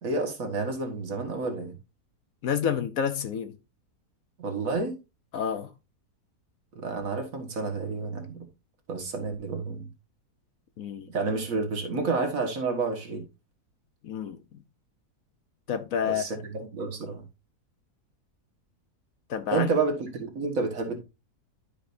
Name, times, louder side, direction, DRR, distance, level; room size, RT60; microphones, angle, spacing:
voice 1, 0.0-1.8 4.4-5.0 6.8-8.4 8.9-9.9 11.1-13.2 16.0-17.2 19.5-21.0, right 3 dB, 60° right, 1.9 m, -30 dB
voice 2, 2.4-3.6 5.3-5.7 10.8-11.1 14.0-14.6 15.7-16.3 19.3-19.7, left 8 dB, 65° left, 1.1 m, -29 dB
12.0 x 5.0 x 2.6 m
omnidirectional pair, 1.7 m